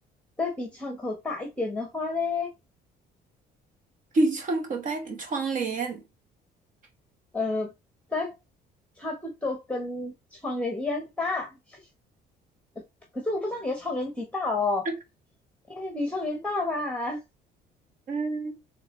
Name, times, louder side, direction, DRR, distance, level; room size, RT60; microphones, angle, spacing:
voice 1, 0.4-2.5 7.3-7.7 8.1-8.3 9.0-11.8 13.1-14.9 15.7-17.2, left 3 dB, 5° left, 1.0 m, -30 dB
voice 2, 4.1-6.0 14.8-14.9 18.1-18.5, right 3 dB, 50° right, 1.1 m, -27 dB
4.8 x 3.3 x 3.0 m
cardioid pair, 110°, 17 cm